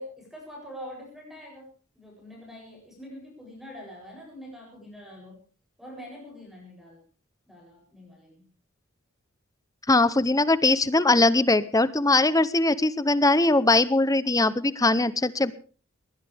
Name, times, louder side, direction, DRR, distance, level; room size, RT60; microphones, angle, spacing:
voice 1, 0.0-1.7 1.9-5.4 5.8-7.0 7.5-8.5, equal, ahead, -2 dB, 7.9 m, -44 dB
voice 2, 9.9-15.5, left 2 dB, 15° left, 16 dB, 0.8 m, -21 dB
21.0 x 19.5 x 3.5 m, 0.39 s
head